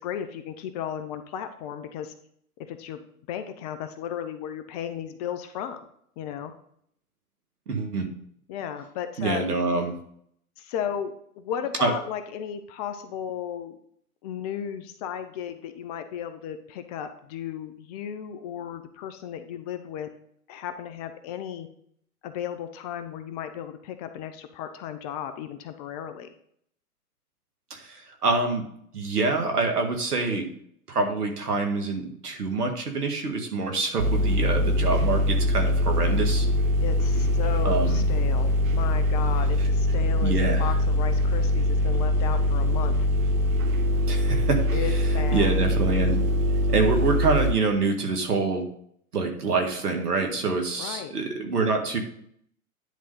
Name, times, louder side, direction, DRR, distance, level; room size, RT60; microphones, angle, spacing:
voice 1, 0.0-2.1 2.6-5.9 6.2-6.5 8.5-9.5 10.6-13.8 14.2-20.1 20.5-21.7 22.2-26.3 36.8-43.1 44.7-45.6 50.8-51.1, left 9 dB, 25° left, 9 dB, 0.5 m, -35 dB
voice 2, 7.7-8.1 9.2-9.9 11.8-11.9 27.7-28.7 28.9-30.4 30.9-36.5 37.6-38.1 40.2-40.6 44.1-44.6 45.3-46.2 46.7-48.6 49.1-52.0, right 3 dB, 85° right, 4 dB, 1.9 m, -26 dB
sound 1, 34.0-47.5, equal, 60° right, 1.0 m, -23 dB
10.5 x 3.7 x 5.5 m, 0.66 s
hypercardioid pair, 115°, 45 cm